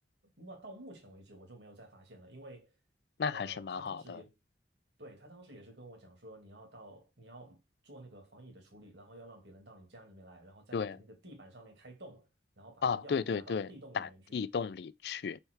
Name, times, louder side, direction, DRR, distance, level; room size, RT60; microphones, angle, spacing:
voice 1, 0.4-2.8 3.3-4.4 5.0-7.6 7.8-12.3 12.6-14.4, right 1 dB, 80° right, 2.4 m, -52 dB
voice 2, 3.2-4.2 10.7-11.0 12.8-13.7 13.9-15.4, left 6 dB, 65° left, 0.4 m, -34 dB
5.6 x 4.6 x 4.5 m
head